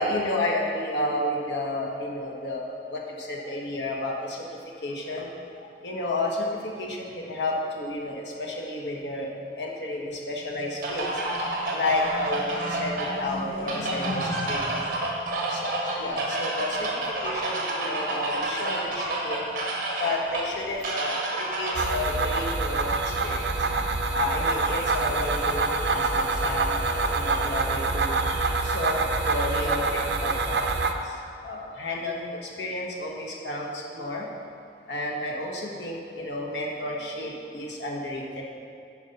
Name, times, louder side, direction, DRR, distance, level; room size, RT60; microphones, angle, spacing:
voice 1, 0.0-4.5 4.8-5.3 5.6-9.3 9.6-11.4 11.7-15.6 16.0-19.7 20.0-23.5 24.1-28.1 28.6-34.3 34.9-38.4, left 1 dB, 80° left, -2 dB, 1.4 m, -31 dB
sound 1, 10.8-21.9, right 2 dB, 50° right, 1.4 m, -30 dB
sound 2, 21.7-30.9, right 3 dB, 75° right, 0.6 m, -26 dB
9.7 x 5.1 x 5.4 m, 2.6 s
head